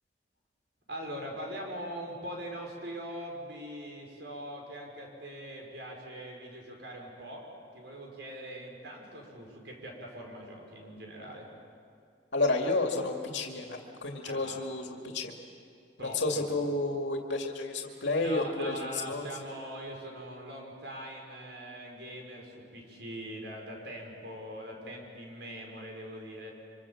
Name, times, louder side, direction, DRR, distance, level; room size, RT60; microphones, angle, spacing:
voice 1, 0.9-7.5 7.7-11.5 14.2-14.6 16.0-16.4 18.2-26.5, equal, 70° right, 0 dB, 5.8 m, -42 dB
voice 2, 12.3-15.3 16.0-19.2, left 2 dB, 80° left, 2 dB, 2.3 m, -31 dB
26.0 x 25.5 x 7.4 m, 2.4 s
head